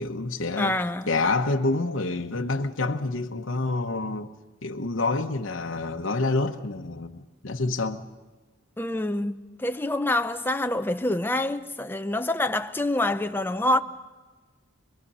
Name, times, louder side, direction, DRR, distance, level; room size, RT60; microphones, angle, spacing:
voice 1, 0.0-0.8 1.1-4.3 4.6-8.0, left 3 dB, 70° left, 1.0 m, -27 dB
voice 2, 0.6-1.1 8.8-13.8, left 1 dB, 10° left, 0.7 m, -26 dB
27.0 x 22.0 x 5.6 m
head